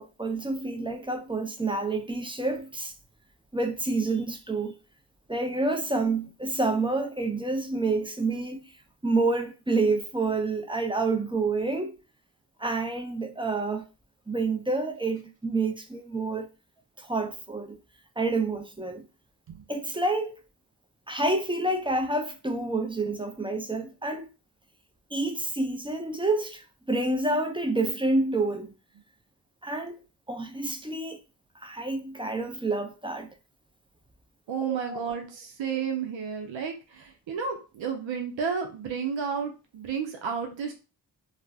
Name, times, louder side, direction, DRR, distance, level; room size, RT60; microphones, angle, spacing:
voice 1, 0.0-2.9 3.5-4.7 5.3-8.7 9.0-11.9 12.6-13.8 14.3-16.5 17.0-17.8 18.2-19.0 19.7-20.4 21.1-24.3 25.1-28.7 29.6-30.0 30.3-31.2 31.6-33.3 34.7-35.0, right 3 dB, 10° right, 0.4 m, -28 dB
voice 2, 34.5-40.7, right 6 dB, 85° right, 0.6 m, -32 dB
2.4 x 2.0 x 3.3 m
cardioid pair, 45°, 45 cm